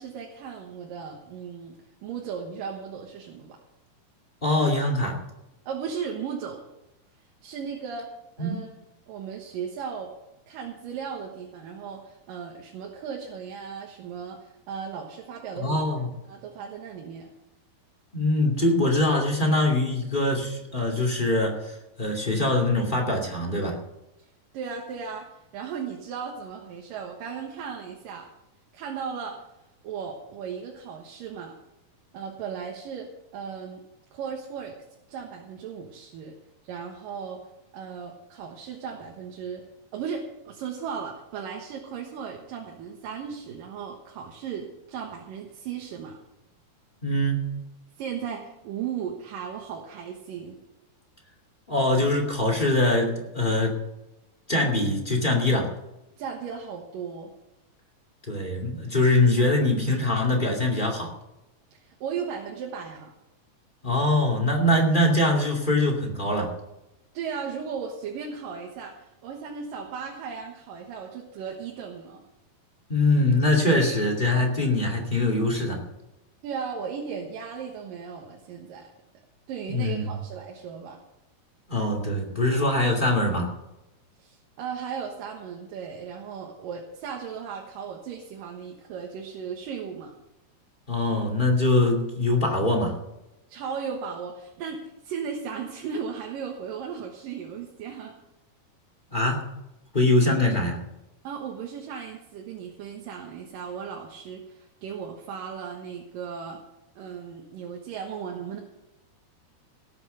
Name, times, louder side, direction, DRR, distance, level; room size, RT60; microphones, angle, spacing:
voice 1, 0.0-1.8 2.0-3.6 5.7-6.6 7.4-8.1 8.4-8.7 9.1-10.1 10.5-15.8 16.3-17.3 24.5-28.3 28.7-29.4 29.8-31.5 32.1-33.8 34.1-34.7 35.1-36.3 36.6-37.4 37.7-39.6 39.9-46.2 48.0-50.6 56.2-57.3 61.7-63.1 67.1-72.2 76.4-78.9 79.5-81.0 84.2-90.1 93.5-98.1 101.2-106.6 107.0-108.6, right 6 dB, 65° right, 1 dB, 2.9 m, -36 dB
voice 2, 4.4-5.2 8.4-8.6 15.6-16.1 18.1-23.8 47.0-47.6 51.7-53.7 54.5-55.7 58.3-61.1 63.8-66.5 72.9-75.8 79.7-80.1 81.7-83.5 90.9-93.0 99.1-99.5 99.9-100.8, left 1 dB, 15° left, 2 dB, 1.7 m, -23 dB
18.0 x 8.1 x 6.7 m, 0.93 s
omnidirectional pair, 4.4 m